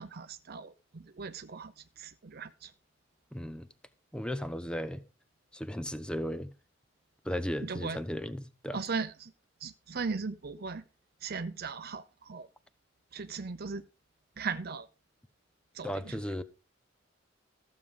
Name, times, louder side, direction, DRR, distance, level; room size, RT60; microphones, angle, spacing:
voice 1, 0.0-2.7 7.6-8.0 8.7-9.3 9.6-10.8 11.2-12.5 13.1-13.8 14.4-14.9 15.7-16.2, right 5 dB, 55° right, 0.7 m, -38 dB
voice 2, 3.3-3.7 4.1-5.0 5.5-6.5 7.2-8.8 15.8-16.4, equal, 5° left, 0.9 m, -35 dB
14.5 x 7.5 x 4.9 m
head